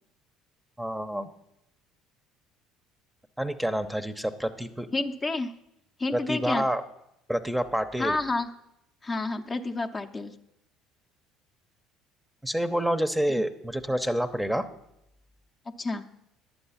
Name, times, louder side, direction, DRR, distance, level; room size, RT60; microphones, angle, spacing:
voice 1, 0.8-1.3 3.4-4.9 6.1-6.8 7.3-8.2 12.4-14.7, equal, 5° right, 10 dB, 0.8 m, -28 dB
voice 2, 4.9-5.5 6.0-6.7 8.0-8.5 9.0-10.3 13.4-13.5 15.7-16.0, left 3 dB, 30° left, 6 dB, 0.8 m, -29 dB
11.5 x 7.8 x 5.7 m, 0.82 s
hypercardioid pair, 65°, 0 cm